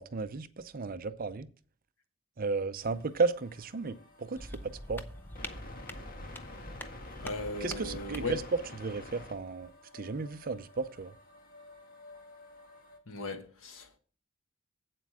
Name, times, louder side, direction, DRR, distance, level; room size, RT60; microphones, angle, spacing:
voice 1, 0.0-1.5 2.4-5.0 7.6-8.4 8.8-11.1, right 4 dB, 45° right, 0.5 m, -34 dB
sound 1, 2.8-13.0, left 2 dB, 45° left, 1.6 m, -50 dB
sound 2, 4.4-8.5, left 1 dB, 10° left, 0.6 m, -44 dB
voice 2, 7.2-8.4 13.1-14.0, left 2 dB, 85° left, 1.5 m, -37 dB
8.4 x 7.7 x 4.8 m
head